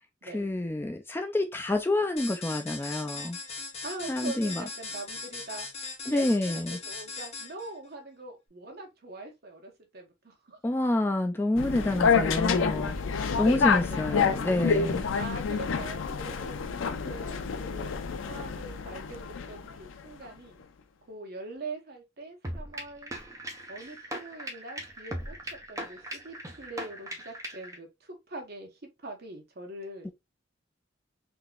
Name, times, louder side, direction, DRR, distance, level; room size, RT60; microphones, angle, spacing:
voice 1, 0.2-3.4 4.1-4.6 6.1-6.8 10.6-13.0 13.4-15.0 30.0-30.1, left 1 dB, 10° left, 0.3 m, -28 dB
sound 1, 2.2-7.7, left 3 dB, 35° left, 1.0 m, -39 dB
voice 2, 3.8-5.7 6.1-10.6 12.2-12.3 13.9-14.4 15.1-16.6 17.0-20.6 21.1-23.1 23.7-25.3 25.7-28.7 29.0-30.1, right 2 dB, 55° right, 1.0 m, -43 dB
sound 2, 11.6-19.9, left 5 dB, 90° left, 0.5 m, -28 dB
sound 3, 22.4-27.8, right 1 dB, 15° right, 0.7 m, -39 dB
3.7 x 2.8 x 2.3 m
head